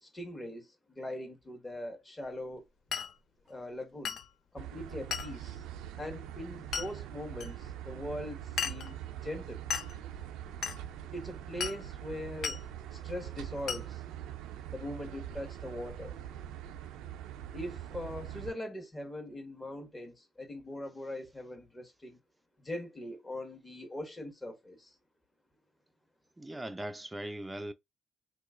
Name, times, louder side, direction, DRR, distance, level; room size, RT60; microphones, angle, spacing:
voice 1, 0.0-2.6 3.5-4.2 4.5-5.6 6.0-9.6 11.1-12.6 12.9-14.0 14.7-16.1 17.5-22.2 22.6-24.9, left 1 dB, 20° left, 1.4 m, -41 dB
Glass, 2.9-3.1 4.0-4.3 5.1-5.4 6.7-6.9 7.4-7.5 8.6-8.9 9.7-9.9 10.6-10.8 11.6-11.8 12.4-12.6 13.7-13.9, left 7 dB, 65° left, 0.6 m, -35 dB
sound 1, 4.6-18.5, right 11 dB, 85° right, 0.5 m, -43 dB
voice 2, 26.4-27.7, right 1 dB, 10° right, 0.5 m, -39 dB
2.9 x 2.3 x 3.7 m
cardioid pair, 85°, 0 cm